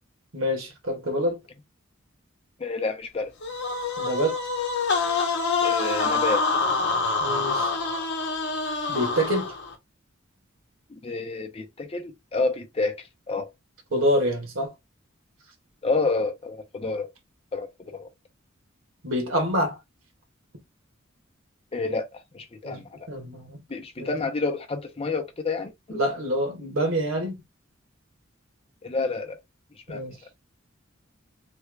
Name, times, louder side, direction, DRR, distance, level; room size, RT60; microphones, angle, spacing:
voice 1, 0.3-1.4 4.0-4.4 7.2-7.7 8.9-9.5 13.9-14.7 19.0-19.8 22.6-23.6 24.0-24.1 25.9-27.4 29.9-30.2, equal, 80° right, 1.3 m, -26 dB
voice 2, 2.6-3.3 5.6-6.5 10.9-13.5 15.8-17.1 17.5-18.1 21.7-23.1 23.7-26.0 28.8-29.4 29.7-30.0, left 3 dB, 30° left, 0.6 m, -29 dB
sound 1, 3.4-9.8, left 4 dB, 55° left, 0.8 m, -26 dB
3.3 x 2.3 x 3.1 m
head